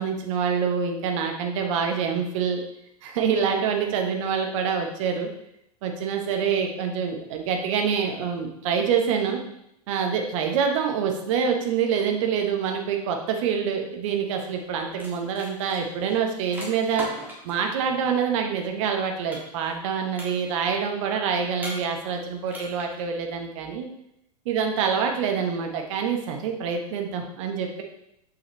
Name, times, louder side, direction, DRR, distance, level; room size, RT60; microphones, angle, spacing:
voice 1, 0.0-2.6 3.0-5.3 5.8-9.4 9.9-17.1 17.4-23.9 24.4-27.8, right 6 dB, 50° right, 3 dB, 1.1 m, -26 dB
sound 1, 14.4-14.6 14.9-17.6 19.3-19.9 20.1-20.7 21.6-22.2 22.5-23.0, right 1 dB, 10° right, 1.7 m, -38 dB
6.7 x 5.6 x 3.1 m, 0.78 s
figure-of-eight pair, 90°, 21 cm